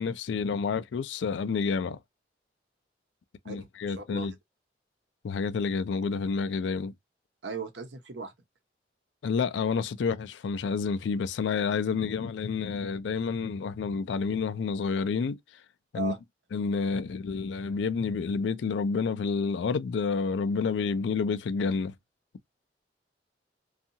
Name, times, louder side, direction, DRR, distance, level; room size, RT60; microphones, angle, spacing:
voice 1, 0.0-2.0 3.5-4.3 5.2-6.9 9.2-15.4 15.9-16.1 16.5-21.9, left 5 dB, 85° left, 0.3 m, -29 dB
voice 2, 3.4-4.3 7.4-8.3 15.9-16.2, right 4 dB, 85° right, 0.8 m, -37 dB
2.7 x 2.4 x 2.7 m
head